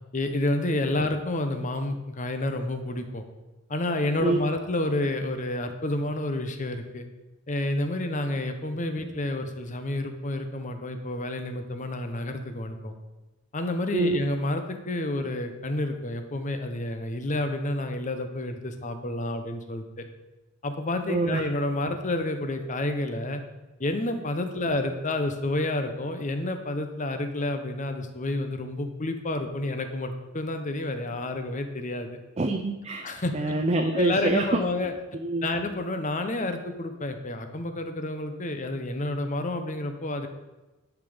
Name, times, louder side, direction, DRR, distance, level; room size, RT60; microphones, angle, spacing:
voice 1, 0.1-3.2 3.7-7.1 7.5-12.9 13.5-20.1 20.6-23.4 23.8-32.2 33.0-33.5 33.9-34.9 35.4-40.3, left 2 dB, 35° left, 7 dB, 0.9 m, -29 dB
voice 2, 21.1-21.4 32.4-34.4 35.2-35.5, right 2 dB, 30° right, 4 dB, 0.5 m, -26 dB
11.0 x 6.0 x 5.1 m, 1.1 s
head